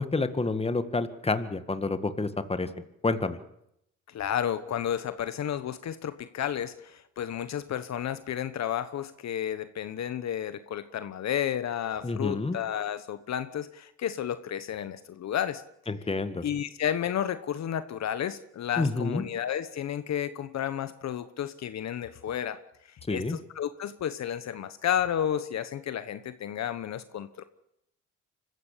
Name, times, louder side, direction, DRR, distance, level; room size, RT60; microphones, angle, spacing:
voice 1, 0.0-2.7 3.0-3.4 12.0-12.6 15.9-16.4 18.8-19.2 23.1-23.4, left 3 dB, 20° left, 11 dB, 1.9 m, -29 dB
voice 2, 4.1-15.6 16.4-22.6 23.1-27.4, left 10 dB, 60° left, 12 dB, 1.2 m, -32 dB
25.0 x 15.0 x 8.4 m, 0.80 s
cardioid pair, 90°, 30 cm